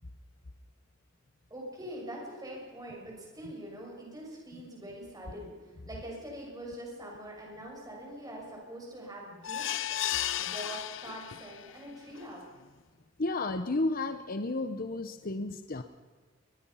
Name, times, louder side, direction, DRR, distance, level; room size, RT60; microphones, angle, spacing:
voice 1, 1.5-9.7 10.1-12.4, right 1 dB, 20° right, -2 dB, 6.6 m, -44 dB
sound 1, 9.4-11.7 12.2-12.3 12.6-12.7, left 11 dB, 70° left, 0.6 m, -34 dB
voice 2, 13.2-15.8, left 2 dB, 50° left, 9 dB, 1.0 m, -32 dB
22.0 x 22.0 x 5.8 m, 1.4 s
head